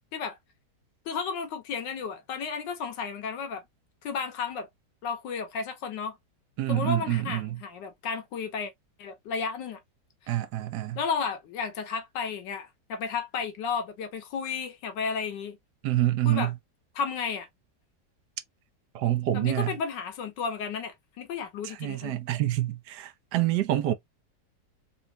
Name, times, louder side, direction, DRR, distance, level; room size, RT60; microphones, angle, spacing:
voice 1, 1.0-3.6 4.0-4.7 5.0-6.2 6.7-8.7 9.0-9.8 10.2-10.3 10.9-15.6 16.2-16.5 16.9-17.5 19.3-22.1, left 5 dB, 90° left, 1.6 m, -33 dB
voice 2, 6.6-7.6 10.3-11.0 15.8-16.5 18.9-19.7 21.6-23.9, right 14 dB, 75° right, 1.2 m, -27 dB
4.2 x 2.5 x 2.7 m
omnidirectional pair, 1.9 m